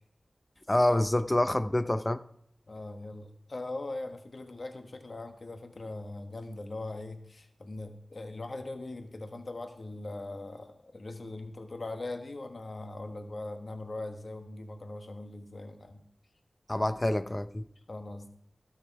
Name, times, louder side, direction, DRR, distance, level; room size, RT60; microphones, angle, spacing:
voice 1, 0.7-2.2 16.7-17.6, left 1 dB, 25° left, 0.6 m, -27 dB
voice 2, 2.7-16.0 17.9-18.3, left 2 dB, 60° left, 1.4 m, -40 dB
16.0 x 6.6 x 4.7 m
wide cardioid pair, 50°, 0 cm